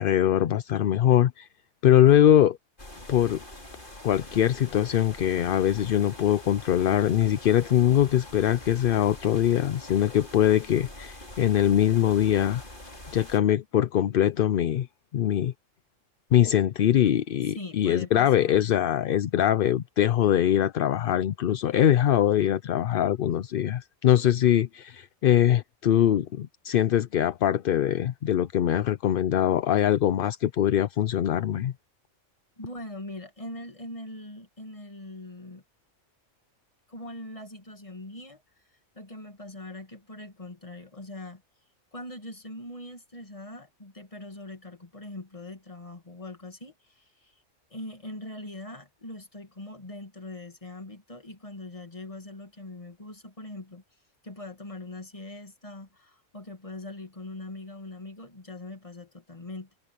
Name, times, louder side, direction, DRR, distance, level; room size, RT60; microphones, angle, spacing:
voice 1, 0.0-1.5 1.8-2.6 3.1-3.4 4.0-12.6 13.1-14.9 15.1-15.5 16.3-31.7, left 11 dB, 60° left, 0.6 m, -22 dB
sound 1, 2.8-13.4, left 1 dB, 45° left, 5.6 m, -44 dB
voice 2, 17.5-18.7 32.6-35.6 36.9-38.4 38.9-41.4 41.9-47.3 47.7-53.8 54.2-59.7, left 1 dB, 25° left, 2.3 m, -41 dB
omnidirectional pair, 1.3 m